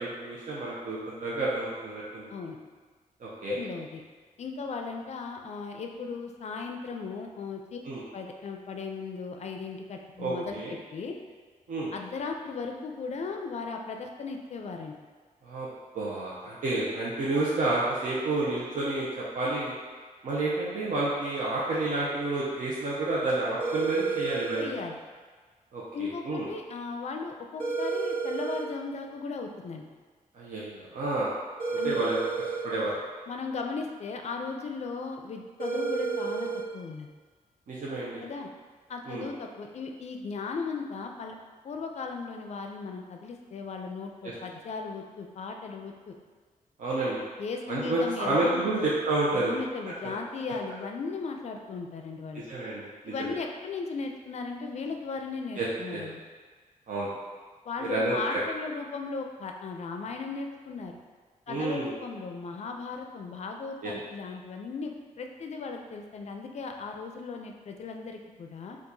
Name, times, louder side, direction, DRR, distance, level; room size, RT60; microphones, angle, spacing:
voice 1, 0.0-2.3 3.2-3.5 7.8-8.0 10.2-10.7 11.7-11.9 15.4-15.7 15.9-19.8 20.2-24.7 25.7-26.5 30.3-31.3 31.8-32.2 32.6-32.9 37.7-38.2 39.1-39.3 44.2-44.3 46.8-47.2 47.7-49.5 52.5-53.1 55.6-56.0 56.9-57.1 57.8-58.4 61.5-61.9 63.8-63.9, right 2 dB, 65° right, -7 dB, 0.7 m, -30 dB
voice 2, 3.5-4.0 4.4-7.8 8.1-11.2 11.9-14.9 16.7-16.8 24.6-25.0 25.9-29.8 31.8-32.0 33.3-36.5 36.7-37.1 38.2-38.5 38.9-41.4 41.6-46.1 47.4-48.9 49.3-52.5 53.1-56.2 57.7-61.0 61.5-68.8, left 4 dB, 50° left, 3 dB, 0.4 m, -37 dB
sound 1, 23.6-24.6 27.6-28.6 31.6-32.6 35.6-36.6, right 4 dB, 85° right, 0.9 m, -30 dB
4.5 x 2.4 x 2.7 m, 1.5 s
wide cardioid pair, 105°, 14 cm